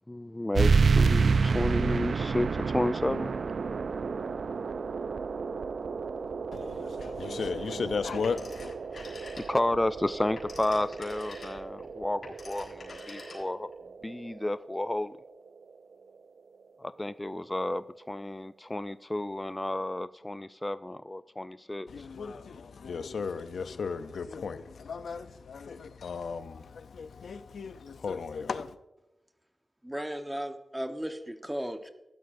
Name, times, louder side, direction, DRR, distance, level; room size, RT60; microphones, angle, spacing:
voice 1, 0.1-3.3 9.4-13.7 14.0-15.1 16.8-22.1, left 1 dB, 20° left, 0.3 m, -31 dB
sound 1, 0.5-15.6, right 5 dB, 75° right, 0.4 m, -30 dB
voice 2, 6.5-8.7 21.9-26.6 26.9-28.7, left 5 dB, 85° left, 0.5 m, -35 dB
Telephone, 8.2-9.8 10.1-13.7, left 3 dB, 70° left, 4.1 m, -47 dB
voice 3, 29.8-31.9, equal, 10° right, 1.1 m, -35 dB
15.0 x 12.0 x 2.6 m
cardioid pair, 50°, 0 cm